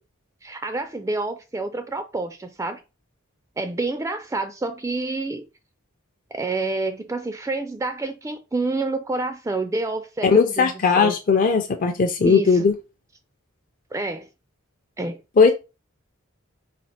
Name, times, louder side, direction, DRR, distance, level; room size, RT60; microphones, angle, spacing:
voice 1, 0.4-2.8 3.6-5.4 6.3-11.1 12.2-12.6 13.9-14.3 15.0-15.2, right 2 dB, 15° right, 0.3 m, -28 dB
voice 2, 10.2-12.7 15.4-15.5, left 5 dB, 40° left, 0.5 m, -18 dB
4.4 x 2.4 x 4.2 m
head